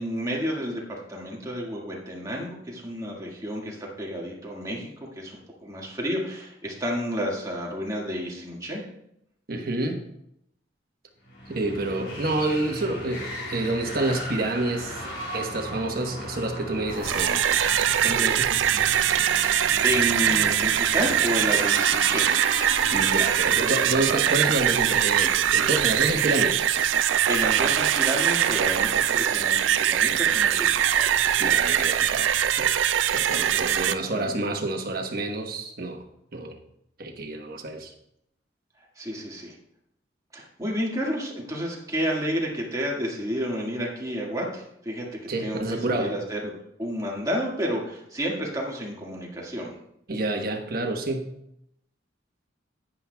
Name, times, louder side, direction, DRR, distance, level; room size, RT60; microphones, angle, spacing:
voice 1, 0.0-5.4 5.6-8.8 19.3-22.3 27.3-30.7 30.9-31.2 33.5-34.4 38.9-39.5 40.3-46.5 46.8-49.7, equal, 20° right, -2 dB, 1.8 m, -31 dB
voice 2, 9.5-10.0 11.5-17.6 18.0-18.6 22.9-26.6 31.4-32.8 33.1-36.1 36.3-36.6 37.0-37.9 45.3-46.1 50.1-51.3, right 2 dB, 55° right, 4 dB, 1.2 m, -28 dB
sound 1, 11.2-24.1, left 1 dB, 85° left, 3.1 m, -36 dB
sound 2, 16.9-33.9, right 10 dB, 85° right, 0.4 m, -22 dB
10.5 x 9.8 x 2.3 m, 0.77 s
head